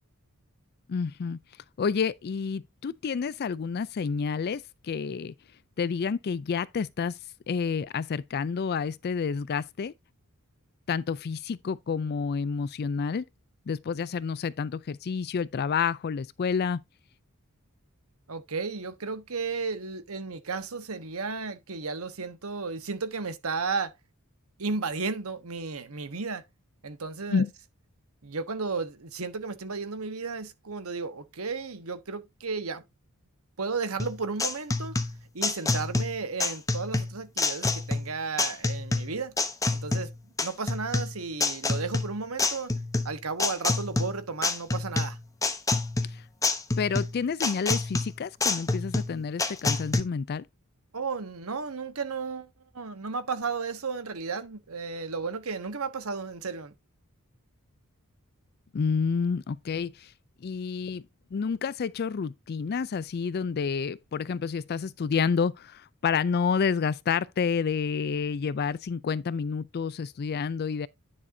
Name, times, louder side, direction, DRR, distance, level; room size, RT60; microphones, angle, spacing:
voice 1, 0.9-1.4 1.8-5.3 5.8-7.2 7.5-9.9 10.9-13.3 13.7-16.8 27.3-27.5 46.1-46.2 46.8-50.4 58.7-60.1 60.4-61.0 61.3-70.9, left 6 dB, 45° left, 0.4 m, -29 dB
voice 2, 18.3-23.9 24.6-26.4 26.8-27.4 28.2-32.8 33.6-34.9 35.3-39.3 39.7-40.1 40.4-42.7 43.0-45.2 50.9-56.7, right 4 dB, 70° right, 1.2 m, -33 dB
sound 1, 34.0-50.0, left 3 dB, 15° left, 0.9 m, -28 dB
10.0 x 6.1 x 2.7 m
head